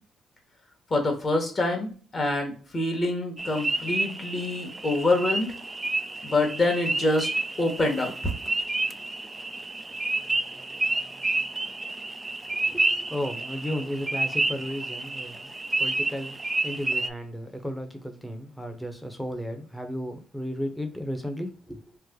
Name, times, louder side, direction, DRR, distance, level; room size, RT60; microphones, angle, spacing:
voice 1, 0.9-5.5 6.2-7.3 7.6-8.1, left 2 dB, 35° left, 1.2 m, -26 dB
sound 1, 3.4-17.1, right 2 dB, 20° right, 0.3 m, -30 dB
voice 2, 12.5-15.5 15.8-16.4 16.6-22.0, equal, 5° left, 0.8 m, -34 dB
3.2 x 2.1 x 3.6 m
cardioid pair, 90°, 0 cm